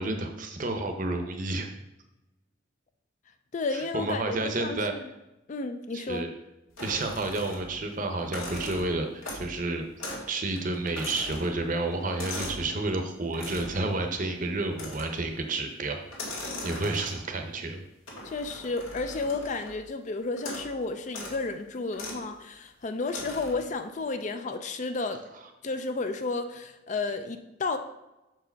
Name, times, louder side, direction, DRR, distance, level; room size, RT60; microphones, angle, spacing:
voice 1, 0.0-1.7 3.7-4.9 5.9-6.3 6.8-9.9 10.3-16.0 16.6-17.8, right 2 dB, 40° right, 5 dB, 0.7 m, -30 dB
voice 2, 3.5-5.1 5.5-6.3 18.2-25.2 25.6-27.8, left 3 dB, 35° left, 8 dB, 0.4 m, -32 dB
sound 1, 6.8-7.8 8.2-9.6 10.0-10.3 10.6-12.7 13.3-13.8 14.7-15.3 16.1-17.4 18.1-19.8 20.4-20.7 21.1-21.4 21.9-22.2 23.1-23.7, left 1 dB, 90° left, 1.7 m, -39 dB
6.1 x 4.7 x 4.5 m, 0.97 s
head